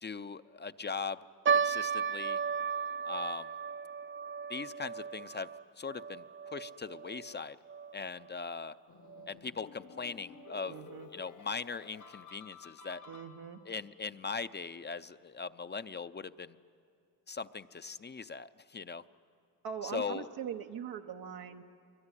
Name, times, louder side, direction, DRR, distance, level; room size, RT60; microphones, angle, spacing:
voice 1, 0.0-1.2 1.5-2.4 3.0-3.5 4.5-5.5 5.8-7.6 7.9-8.8 9.3-10.7 11.1-13.0 13.7-16.6 17.3-19.0 19.9-20.3, left 5 dB, 30° left, 12 dB, 0.6 m, -40 dB
sound 1, 1.5-7.9 8.2-8.3 9.1-9.3 10.0-10.1 10.4-10.6, right 6 dB, 35° right, 0.6 m, -35 dB
sound 2, 8.9-13.8, left 6 dB, 55° left, 1.2 m, -53 dB
voice 2, 10.7-11.1 13.1-13.6 19.6-21.6, right 8 dB, 90° right, 3 dB, 1.1 m, -41 dB
24.5 x 23.5 x 9.9 m, 2.3 s
cardioid pair, 90°, 35 cm